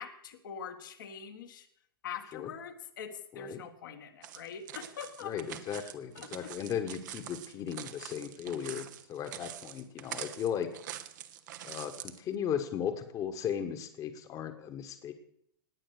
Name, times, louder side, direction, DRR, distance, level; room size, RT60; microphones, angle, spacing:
voice 1, 0.0-1.6 2.0-5.3 5.7-6.5, left 7 dB, 60° left, 4 dB, 1.6 m, -44 dB
sound 1, 4.2-12.2, right 11 dB, 50° right, 1.2 m, -45 dB
voice 2, 5.2-10.7 11.6-15.1, left 8 dB, 30° left, 8 dB, 1.5 m, -36 dB
19.5 x 8.6 x 6.6 m, 0.70 s
figure-of-eight pair, 95°, 12 cm